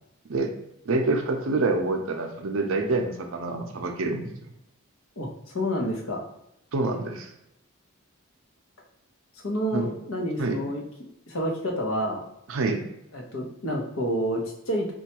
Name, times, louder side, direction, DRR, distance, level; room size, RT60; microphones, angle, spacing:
voice 1, 0.8-4.3 6.7-7.3 9.7-9.9 10.4-10.6 12.5-12.8, right 3 dB, 65° right, 4 dB, 0.5 m, -26 dB
voice 2, 5.2-6.2 9.4-10.8 11.3-12.2 13.1-14.9, equal, 65° left, 1 dB, 0.7 m, -29 dB
4.3 x 2.3 x 2.9 m, 0.82 s
head